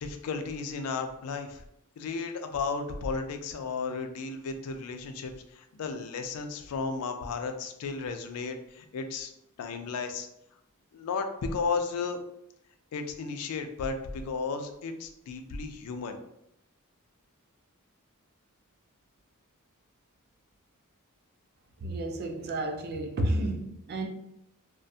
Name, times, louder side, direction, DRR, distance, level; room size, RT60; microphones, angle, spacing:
voice 1, 0.0-1.6 2.0-9.3 9.6-10.3 10.9-12.2 12.9-16.2, left 4 dB, 80° left, 0.3 m, -34 dB
voice 2, 21.8-24.1, right 1 dB, 45° right, 0.4 m, -31 dB
2.4 x 2.2 x 2.6 m
head